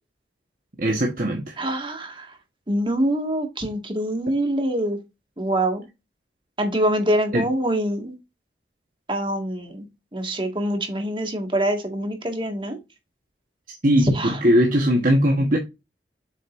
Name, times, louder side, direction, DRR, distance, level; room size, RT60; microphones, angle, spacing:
voice 1, 0.8-1.6 7.3-7.5 13.8-15.6, equal, 50° right, 1.3 m, -20 dB
voice 2, 1.6-2.4 2.7-5.0 5.4-5.8 6.6-8.1 9.1-9.8 10.1-12.8 14.0-14.4, right 1 dB, 30° right, 1.8 m, -24 dB
7.5 x 5.2 x 2.5 m
head